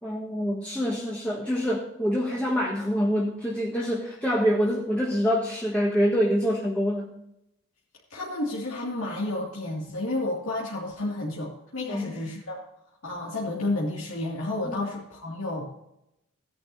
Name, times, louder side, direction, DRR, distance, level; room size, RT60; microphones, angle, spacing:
voice 1, 0.0-7.2 11.9-12.1 14.7-14.8, equal, 5° left, -5 dB, 1.5 m, -26 dB
voice 2, 8.1-12.6 13.0-15.8, left 2 dB, 80° left, -5 dB, 2.4 m, -31 dB
17.0 x 10.5 x 2.8 m, 0.84 s
head